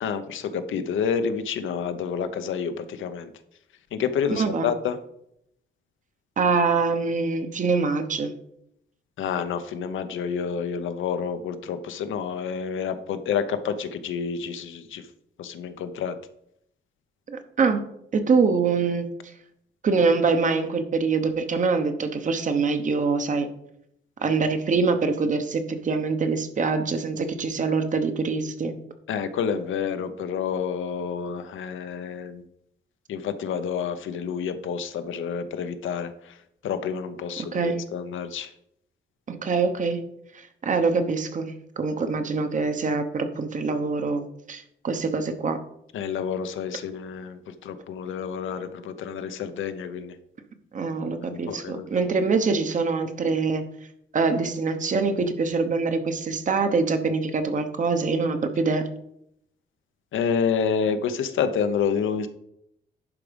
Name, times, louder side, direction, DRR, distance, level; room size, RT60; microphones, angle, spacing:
voice 1, 0.0-3.3 3.9-5.0 9.2-15.0 15.4-16.1 29.1-32.4 33.1-36.1 36.6-38.5 45.9-50.1 51.5-51.8 60.1-62.3, left 7 dB, 85° left, 10 dB, 0.9 m, -29 dB
voice 2, 4.3-4.7 6.4-8.3 17.3-17.8 18.1-19.1 19.8-23.5 24.2-28.8 37.5-37.8 39.3-40.0 40.3-45.6 50.7-53.6 54.1-58.8, right 4 dB, 40° right, 8 dB, 1.0 m, -24 dB
11.0 x 4.9 x 5.1 m, 0.76 s
wide cardioid pair, 150°, 20 cm